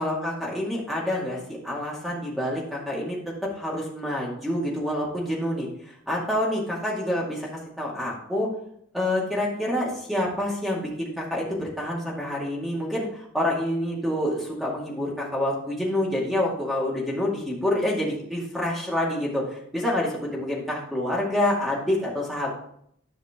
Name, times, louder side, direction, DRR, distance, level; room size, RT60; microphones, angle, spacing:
voice 1, 0.0-3.2 3.5-7.5 7.8-8.5 8.9-22.5, left 1 dB, ahead, -4 dB, 2.2 m, -27 dB
11.0 x 5.7 x 3.7 m, 0.69 s
head